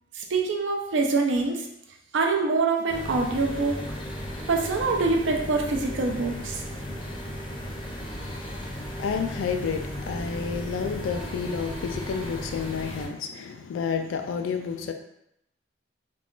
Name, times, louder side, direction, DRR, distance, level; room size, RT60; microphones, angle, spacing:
voice 1, 0.1-1.7 2.1-3.8 4.5-6.6, right 3 dB, 70° right, 2 dB, 0.5 m, -25 dB
sound 1, 2.9-13.1, equal, 25° left, 0.5 m, -35 dB
voice 2, 8.0-14.9, left 6 dB, 80° left, 7 dB, 0.3 m, -31 dB
2.4 x 2.3 x 3.6 m, 0.79 s
head